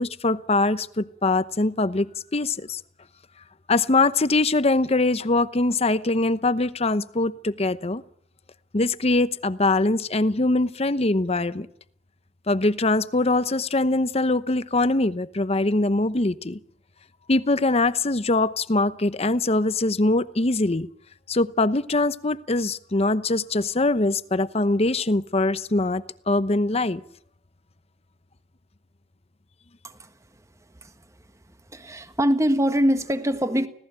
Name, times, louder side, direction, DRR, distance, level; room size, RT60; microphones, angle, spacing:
voice 1, 0.0-2.8 3.7-8.0 8.7-11.7 12.5-16.6 17.3-20.9 21.3-27.0, left 2 dB, 35° left, 15 dB, 0.9 m, -23 dB
voice 2, 31.7-33.7, equal, 15° right, 9 dB, 1.5 m, -23 dB
25.5 x 17.5 x 9.0 m, 0.70 s
head